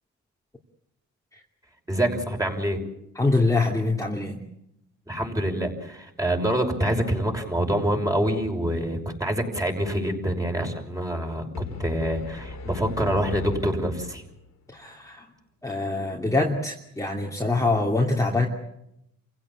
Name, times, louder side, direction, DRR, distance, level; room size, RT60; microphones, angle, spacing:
voice 1, 1.9-2.8 5.1-14.2, right 1 dB, 10° right, 3 dB, 5.9 m, -26 dB
voice 2, 3.2-4.4 14.7-15.2 15.6-18.5, left 2 dB, 10° left, -1 dB, 2.8 m, -24 dB
sound 1, 11.5-14.6, left 3 dB, 65° left, 3.2 m, -38 dB
28.5 x 16.5 x 8.7 m, 0.81 s
cardioid pair, 90°, 30 cm